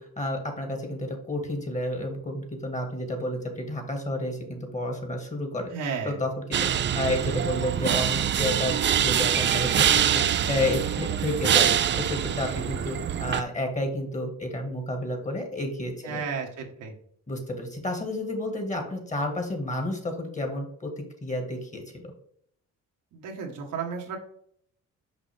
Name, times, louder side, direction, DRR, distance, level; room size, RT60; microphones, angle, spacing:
voice 1, 0.0-5.7 6.0-11.7 11.9-16.2 17.3-21.8, left 1 dB, 25° left, 4 dB, 1.9 m, -31 dB
voice 2, 5.7-6.2 16.0-16.9 23.1-24.2, right 6 dB, 85° right, 0 dB, 1.6 m, -33 dB
sound 1, 6.5-13.4, right 9 dB, 40° right, 0.4 m, -24 dB
6.1 x 5.4 x 3.5 m, 0.66 s
cardioid pair, 90°, 30 cm